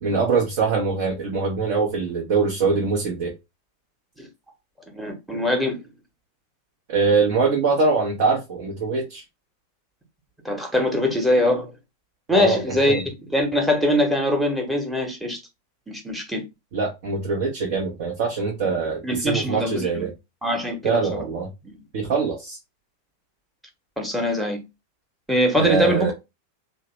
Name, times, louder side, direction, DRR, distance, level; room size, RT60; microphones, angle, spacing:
voice 1, 0.0-3.3 6.9-9.2 12.3-12.6 12.9-13.0 16.7-20.1 20.8-21.5 21.9-22.6 25.6-26.1, right 4 dB, 50° right, 0.7 m, -23 dB
voice 2, 4.9-5.8 10.4-11.7 12.3-13.0 13.3-15.4 15.9-16.4 19.0-20.0 20.4-21.0 21.6-21.8 24.0-24.6 25.3-26.1, left 1 dB, 5° right, 1.0 m, -22 dB
2.9 x 2.1 x 3.0 m
figure-of-eight pair, 90°, 0 cm